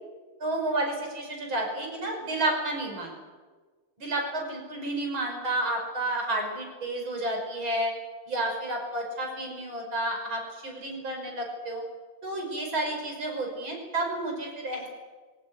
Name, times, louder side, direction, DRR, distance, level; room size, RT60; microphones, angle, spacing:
voice 1, 0.4-3.1 4.0-7.9 8.3-11.8 12.2-14.9, right 1 dB, 75° right, 2 dB, 6.3 m, -31 dB
22.5 x 18.0 x 9.8 m, 1.4 s
omnidirectional pair, 2.2 m